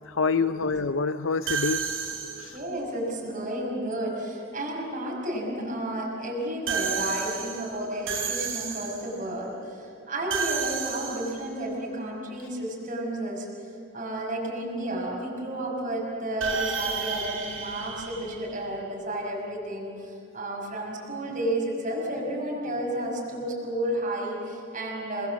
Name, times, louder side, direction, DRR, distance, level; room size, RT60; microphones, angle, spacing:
voice 1, 0.0-1.9 2.4-2.6, left 4 dB, 75° left, 11 dB, 0.6 m, -26 dB
sound 1, 1.5-2.7 6.7-9.2 10.3-11.6 16.4-18.9, right 6 dB, 80° right, 6.9 m, -32 dB
voice 2, 2.5-13.5 13.9-19.9 20.3-25.3, right 1 dB, 40° right, -2 dB, 6.1 m, -32 dB
30.0 x 22.0 x 7.5 m, 2.5 s
head